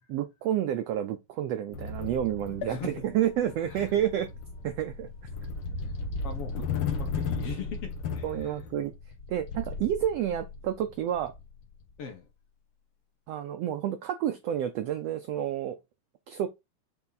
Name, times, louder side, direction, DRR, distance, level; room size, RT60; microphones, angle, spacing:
voice 1, 0.1-4.3 4.6-5.1 8.2-8.9 9.3-11.3 13.3-15.8 16.3-16.5, right 11 dB, 80° right, 1.4 m, -29 dB
sound 1, 1.7-11.9, left 4 dB, 90° left, 1.0 m, -36 dB
sound 2, 2.6-6.3 6.9-7.0 7.2-7.3, left 12 dB, 75° left, 1.6 m, -48 dB
voice 2, 3.6-3.9 5.8-5.9 6.2-8.6 12.0-12.3, left 6 dB, 60° left, 1.8 m, -40 dB
7.0 x 3.6 x 4.0 m
omnidirectional pair, 3.6 m